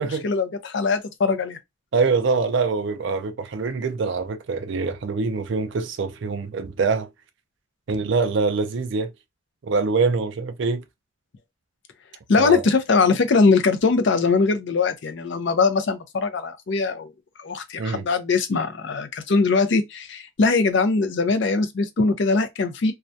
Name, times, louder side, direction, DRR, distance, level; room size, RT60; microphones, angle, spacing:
voice 1, 0.2-1.6 12.3-17.1 17.4-22.9, left 4 dB, 55° left, 0.4 m, -21 dB
voice 2, 1.9-7.1 7.9-9.1 9.6-10.8 12.4-12.6 17.8-18.1, right 4 dB, 60° right, 0.4 m, -24 dB
2.3 x 2.1 x 2.6 m
head